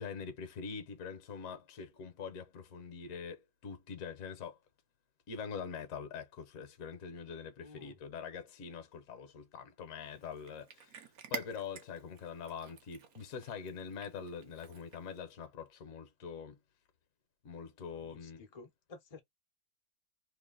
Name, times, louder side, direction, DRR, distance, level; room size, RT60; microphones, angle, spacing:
voice 1, 0.0-4.6 5.3-11.0 11.3-16.6 17.4-18.4, left 6 dB, 55° left, 1.2 m, -44 dB
voice 2, 7.6-8.0 17.9-19.2, left 3 dB, 30° left, 0.7 m, -53 dB
Cat, 10.0-15.2, right 8 dB, 60° right, 1.1 m, -49 dB
3.1 x 2.8 x 3.9 m
omnidirectional pair, 2.0 m